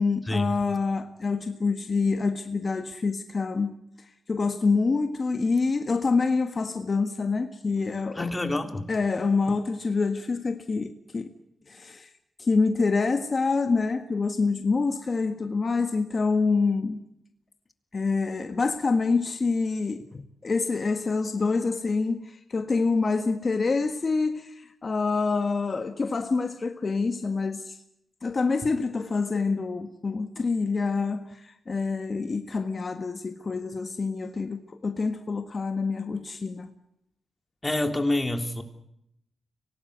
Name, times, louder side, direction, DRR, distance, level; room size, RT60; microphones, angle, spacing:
voice 1, 0.0-3.7 4.3-8.3 8.9-11.3 11.7-12.1 12.4-17.0 17.9-27.8 28.2-36.7, left 4 dB, 50° left, 1.6 m, -26 dB
voice 2, 8.1-8.9 37.6-38.6, left 1 dB, 20° left, 3.5 m, -27 dB
24.0 x 18.5 x 8.1 m
supercardioid pair, 45°, 0 cm